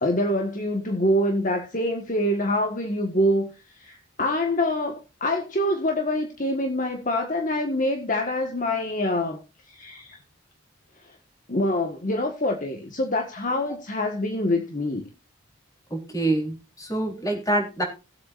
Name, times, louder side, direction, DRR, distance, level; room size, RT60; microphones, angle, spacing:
voice 1, 0.0-9.4 9.7-10.2 11.0-11.1 11.5-15.1, left 1 dB, 35° left, 1.6 m, -25 dB
voice 2, 15.9-17.8, right 1 dB, 15° left, 3.9 m, -26 dB
20.0 x 8.4 x 2.6 m
head